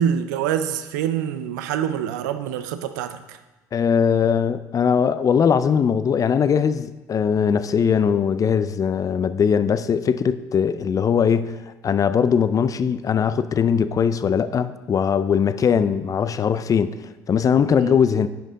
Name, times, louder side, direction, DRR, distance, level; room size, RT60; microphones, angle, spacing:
voice 1, 0.0-3.4 17.8-17.9, right 9 dB, 80° right, 0.5 m, -25 dB
voice 2, 3.7-17.0 17.3-18.3, left 7 dB, 35° left, 0.4 m, -20 dB
10.0 x 5.5 x 3.7 m
hypercardioid pair, 65°, 10 cm